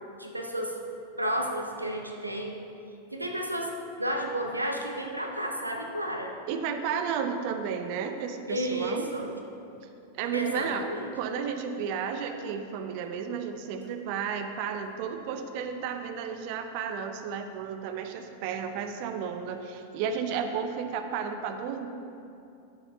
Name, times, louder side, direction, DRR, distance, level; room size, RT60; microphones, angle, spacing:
voice 1, 0.2-0.8 1.2-2.6 3.1-3.7 4.0-6.3 8.5-9.4 10.3-11.2, right 1 dB, 85° right, 2 dB, 0.8 m, -32 dB
voice 2, 6.5-9.1 10.2-10.9 11.1-21.9, right 7 dB, 45° right, 7 dB, 0.5 m, -33 dB
10.5 x 6.9 x 3.1 m, 2.7 s
figure-of-eight pair, 90°, 0 cm